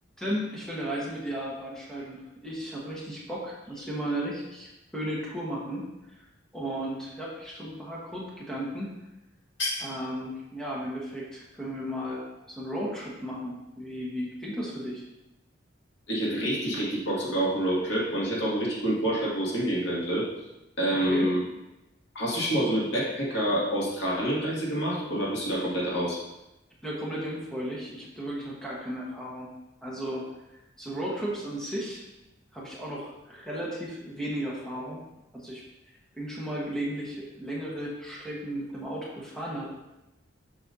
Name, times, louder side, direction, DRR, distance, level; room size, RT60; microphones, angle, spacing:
voice 1, 0.2-6.3 6.5-8.9 9.8-15.0 20.9-21.3 26.8-29.5 29.8-30.2 30.8-32.0 32.5-35.0 35.3-35.6 36.1-39.6, equal, 5° left, -6 dB, 1.2 m, -35 dB
voice 2, 16.1-20.3 20.8-21.4 22.1-26.2, right 1 dB, 75° left, -6 dB, 2.0 m, -27 dB
7.2 x 6.2 x 2.7 m, 0.96 s
head